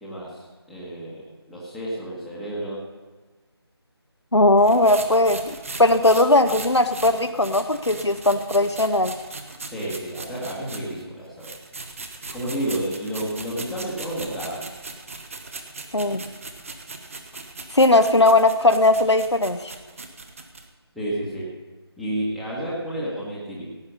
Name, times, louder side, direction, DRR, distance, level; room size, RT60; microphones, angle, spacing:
voice 1, 0.0-2.8 9.7-11.5 12.3-14.6 20.9-21.5 22.0-23.7, right 1 dB, ahead, -9 dB, 1.4 m, -31 dB
voice 2, 4.3-9.1 15.9-16.2 17.7-19.7, left 2 dB, 90° left, 7 dB, 0.9 m, -18 dB
sound 1, 4.6-11.0 11.4-20.6, right 3 dB, 30° right, 1.1 m, -39 dB
16.5 x 8.8 x 5.4 m, 1.3 s
figure-of-eight pair, 160°, 14 cm